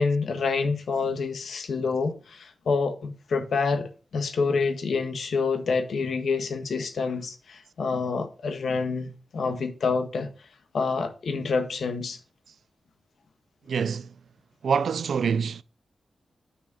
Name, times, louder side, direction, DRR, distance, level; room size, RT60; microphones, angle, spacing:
voice 1, 0.0-10.3 10.7-12.2, left 4 dB, 80° left, 1.4 m, -27 dB
voice 2, 13.7-14.1 14.6-15.6, right 6 dB, 85° right, 0.4 m, -25 dB
6.7 x 6.3 x 5.1 m
cardioid pair, 75°, 0 cm